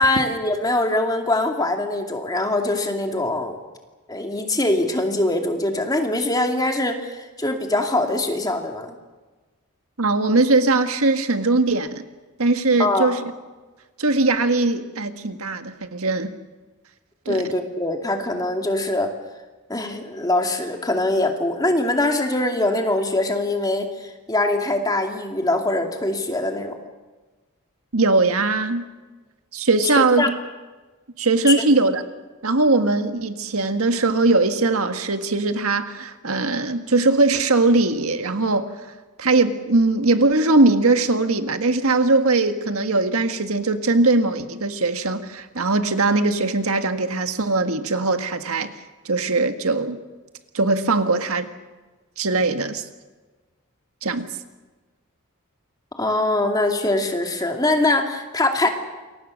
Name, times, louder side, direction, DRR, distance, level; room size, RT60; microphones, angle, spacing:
voice 1, 0.0-3.6 4.1-9.0 12.8-13.2 17.3-19.1 19.7-26.8 30.0-30.3 31.5-31.6 56.0-58.7, left 2 dB, 15° left, 4 dB, 2.4 m, -23 dB
voice 2, 10.0-12.0 12.4-13.2 14.0-16.3 17.2-17.4 27.9-28.8 29.5-30.4 31.2-32.0 32.4-38.7 39.2-48.7 49.0-50.0 50.5-51.5 52.2-52.8 54.0-54.3, right 3 dB, 75° right, 8 dB, 1.7 m, -20 dB
28.5 x 23.5 x 6.5 m, 1.3 s
head